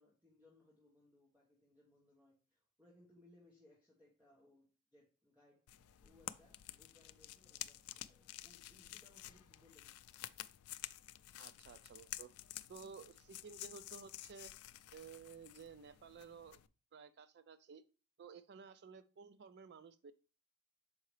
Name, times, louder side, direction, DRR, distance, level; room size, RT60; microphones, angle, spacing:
voice 1, 0.0-5.6 6.0-10.1, left 1 dB, 10° right, 1.2 m, -68 dB
BC gram cracker crumble, 5.7-16.7, left 14 dB, 75° left, 0.3 m, -51 dB
voice 2, 11.4-12.3 12.7-14.5 14.9-16.6 16.9-17.8 18.2-20.1, right 5 dB, 50° right, 0.4 m, -54 dB
6.4 x 4.7 x 3.2 m
head